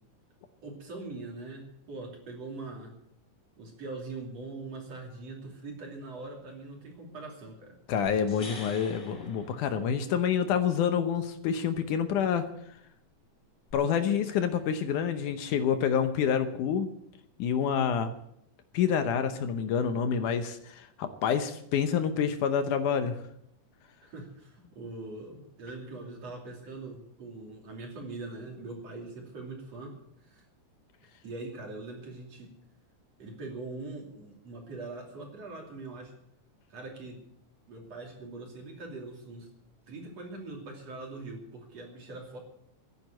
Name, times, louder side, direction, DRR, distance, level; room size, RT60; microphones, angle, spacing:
voice 1, 0.6-3.0 3.6-7.8 24.0-30.4 31.2-32.5 33.2-36.1 36.7-37.2 37.7-39.5 39.9-42.4, right 3 dB, 50° right, 1 dB, 3.9 m, -42 dB
voice 2, 7.9-12.5 13.7-16.9 17.4-18.1 18.7-23.2, left 7 dB, 75° left, 9 dB, 2.3 m, -27 dB
sound 1, 8.1-10.3 13.7-13.8, left 2 dB, 25° left, 5.8 m, -46 dB
13.5 x 10.5 x 7.8 m, 0.75 s
omnidirectional pair, 3.9 m